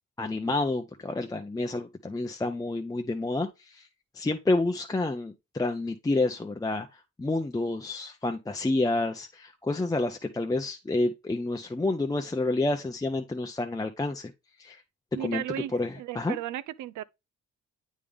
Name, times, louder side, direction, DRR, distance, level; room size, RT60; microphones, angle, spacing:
voice 1, 0.2-3.9 4.1-6.9 7.2-14.3 14.6-14.8 15.2-15.4 15.7-16.4, left 2 dB, 10° left, 0.6 m, -29 dB
voice 2, 15.1-17.0, right 12 dB, 75° right, 0.5 m, -35 dB
8.3 x 3.5 x 3.4 m
cardioid pair, 90°, 30 cm